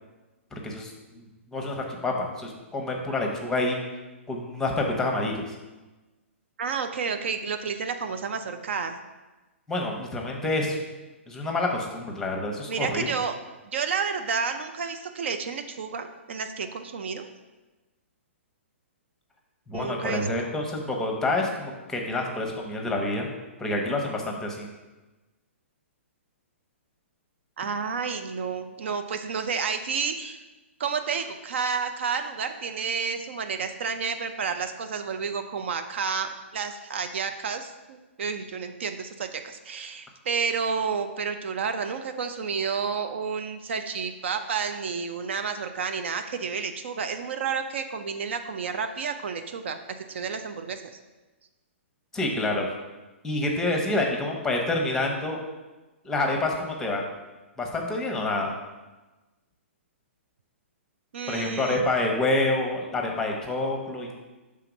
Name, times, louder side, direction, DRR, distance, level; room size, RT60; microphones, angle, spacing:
voice 1, 0.5-1.2 1.5-3.8 4.3-5.4 9.7-10.8 11.3-13.1 19.7-23.3 23.6-24.7 52.1-52.6 53.2-55.4 56.0-57.0 57.6-58.5 61.3-64.1, left 2 dB, 10° left, 1 dB, 1.0 m, -27 dB
voice 2, 6.6-9.0 12.7-13.3 13.6-17.3 19.7-20.5 27.6-30.4 30.8-49.8 50.1-50.8 61.1-61.9, right 5 dB, 60° right, 7 dB, 0.5 m, -30 dB
5.7 x 3.7 x 5.1 m, 1.2 s
hypercardioid pair, 125°, 7 cm